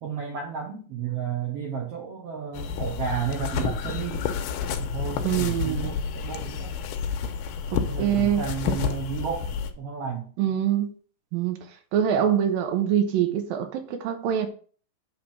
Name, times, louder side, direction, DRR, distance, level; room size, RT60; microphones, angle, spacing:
voice 1, 0.0-4.3 4.8-6.7 7.8-9.5 9.8-10.3, right 6 dB, 60° right, 1.6 m, -32 dB
sound 1, 2.5-9.7, left 6 dB, 80° left, 2.3 m, -30 dB
voice 2, 5.2-5.9 8.0-8.4 10.4-10.9 11.3-11.6 11.9-14.5, right 9 dB, 80° right, 2.6 m, -24 dB
9.1 x 3.8 x 6.1 m
omnidirectional pair, 4.1 m